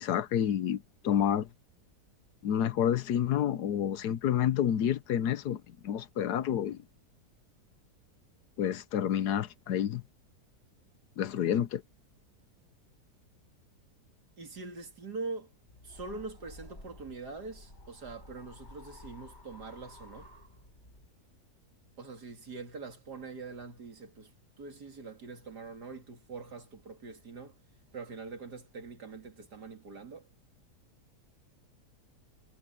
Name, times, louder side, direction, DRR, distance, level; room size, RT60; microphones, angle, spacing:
voice 1, 0.0-1.5 2.4-6.8 8.6-10.0 11.2-11.8, left 9 dB, 75° left, 1.4 m, -29 dB
voice 2, 14.4-15.5 15.8-20.3 22.0-24.3 24.6-27.6 27.9-30.3, right 4 dB, 75° right, 3.3 m, -43 dB
sound 1, 15.7-21.1, left 1 dB, 40° left, 6.3 m, -52 dB
omnidirectional pair, 1.7 m